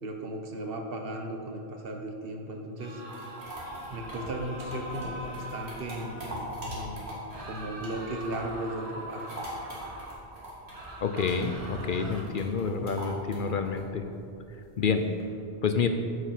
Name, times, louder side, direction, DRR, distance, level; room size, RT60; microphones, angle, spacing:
voice 1, 0.0-3.0 3.9-7.1 7.4-9.4, right 1 dB, 60° right, 2 dB, 1.2 m, -36 dB
sound 1, 2.8-6.4 7.3-10.2 10.7-12.2, right 1 dB, 35° right, 1.1 m, -43 dB
sound 2, 2.8-8.6 8.9-15.2, right 1 dB, 80° right, 2.5 m, -42 dB
voice 2, 11.0-14.0 14.8-15.0 15.6-15.9, left 5 dB, 60° left, 7 dB, 0.7 m, -28 dB
8.1 x 7.8 x 5.9 m, 2.6 s
omnidirectional pair, 1.1 m